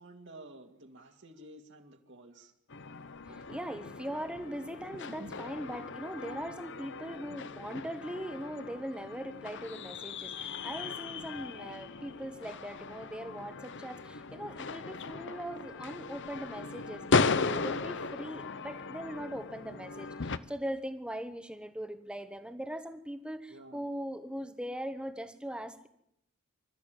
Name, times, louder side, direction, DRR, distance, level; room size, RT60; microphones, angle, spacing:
voice 1, 0.0-2.5 3.3-3.4 5.2-5.4 23.5-23.9, right 1 dB, 55° right, 4 dB, 2.4 m, -51 dB
sound 1, 2.7-20.4, left 4 dB, 55° left, 0.9 m, -36 dB
voice 2, 3.3-25.9, equal, 5° right, 9 dB, 1.3 m, -40 dB
26.0 x 13.5 x 9.3 m, 0.78 s
head